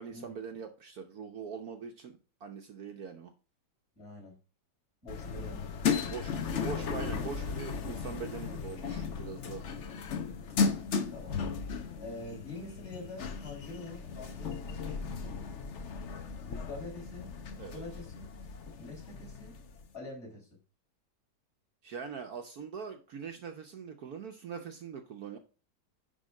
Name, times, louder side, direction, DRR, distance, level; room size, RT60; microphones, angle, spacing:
voice 1, 0.0-3.3 6.0-9.6 17.6-17.8 21.8-25.4, right 6 dB, 60° right, 5 dB, 1.2 m, -42 dB
voice 2, 4.0-4.4 5.0-5.7 11.1-11.4 12.0-15.5 16.5-17.3 17.7-18.3 18.8-19.6 19.9-20.5, left 2 dB, 35° left, -4 dB, 5.4 m, -45 dB
sound 1, 5.1-19.9, left 5 dB, 50° left, 1.0 m, -36 dB
10.0 x 3.7 x 5.3 m, 0.35 s
omnidirectional pair, 1.9 m